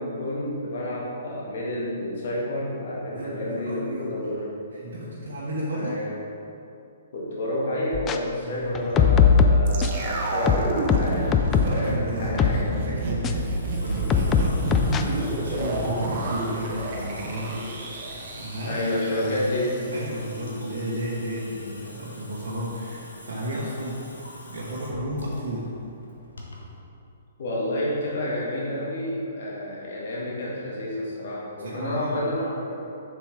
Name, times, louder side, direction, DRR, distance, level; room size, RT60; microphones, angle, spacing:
voice 1, 0.0-4.5 5.7-6.2 7.1-12.6 18.7-19.7 27.4-32.7, left 1 dB, 55° left, -5 dB, 1.7 m, -29 dB
voice 2, 3.1-4.2 4.7-6.0 8.4-9.3 11.4-18.8 19.2-19.4 19.8-24.2 24.5-25.7 31.6-32.2, equal, 60° right, -7 dB, 1.3 m, -33 dB
sound 1, 7.9-8.2 8.7-10.0 10.5-11.8 12.4-12.6 13.2-13.3 14.1-15.0, left 6 dB, 20° left, 0.4 m, -20 dB
sound 2, 9.7-19.8 20.1-20.2, right 2 dB, 40° right, 1.0 m, -30 dB
Water tap faucet / Sink (filling or washing) / Drip, 10.8-26.8, equal, 70° left, 1.3 m, -44 dB
7.1 x 6.5 x 3.8 m, 2.7 s
figure-of-eight pair, 120°, 0 cm